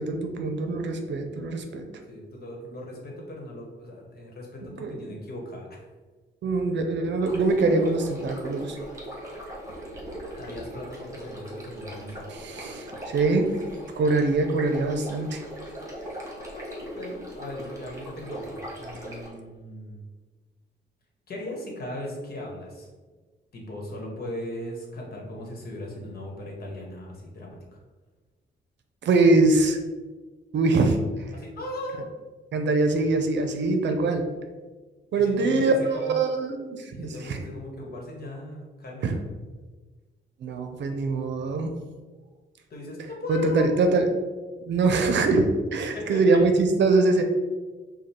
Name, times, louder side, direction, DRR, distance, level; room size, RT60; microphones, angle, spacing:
voice 1, 0.0-1.9 4.8-4.9 6.4-8.8 12.3-13.6 13.9-15.4 29.0-29.8 30.5-31.3 32.5-34.3 35.1-35.7 36.0-37.4 39.0-39.1 40.4-41.7 43.3-44.1 44.6-47.2, right 3 dB, 65° right, 5 dB, 0.6 m, -23 dB
voice 2, 2.1-5.8 10.3-12.4 16.5-20.1 21.3-22.9 23.5-27.6 31.3-32.1 35.1-36.2 36.9-39.2 42.7-43.8 45.9-46.4, left 1 dB, 50° left, -1 dB, 1.3 m, -38 dB
sound 1, 7.2-19.3, right 1 dB, 15° right, 1.5 m, -39 dB
5.2 x 2.3 x 4.4 m, 1.3 s
cardioid pair, 120°, 20 cm